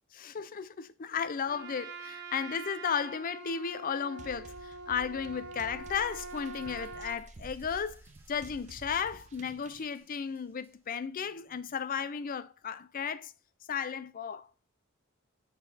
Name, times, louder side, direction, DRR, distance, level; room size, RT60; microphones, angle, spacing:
voice 1, 0.1-8.0 8.3-13.3 13.7-14.5, left 7 dB, 45° left, 0.4 m, -34 dB
Trumpet, 1.4-7.2, right 3 dB, 55° right, 1.0 m, -44 dB
sound 1, 4.2-9.8, right 3 dB, 35° right, 0.5 m, -52 dB
sound 2, 5.8-11.9, right 1 dB, 10° right, 1.5 m, -56 dB
7.0 x 6.7 x 3.3 m
head